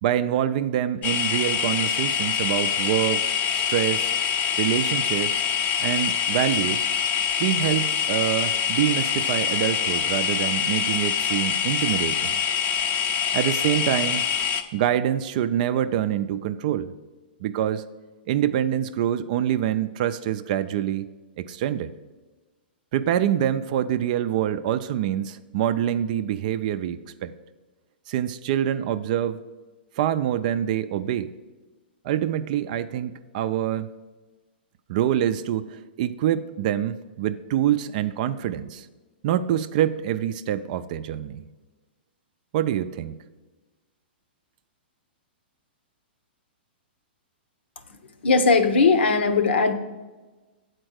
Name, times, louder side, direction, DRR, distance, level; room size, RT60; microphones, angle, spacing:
voice 1, 0.0-3.2 3.5-4.1 4.6-5.4 5.8-6.9 7.4-12.3 13.3-14.2 14.7-16.9 17.4-17.8 18.3-21.1 21.4-21.9 22.9-27.3 28.1-29.4 30.0-31.3 32.0-33.9 34.9-38.9 39.2-41.4 42.5-43.2, right 11 dB, 45° right, 12 dB, 0.4 m, -25 dB
sound 1, 1.0-14.6, left 7 dB, 25° left, 0.5 m, -25 dB
voice 2, 48.2-49.7, left 4 dB, 80° left, 9 dB, 0.9 m, -19 dB
7.8 x 4.4 x 6.3 m, 1.2 s
hypercardioid pair, 140°, 6 cm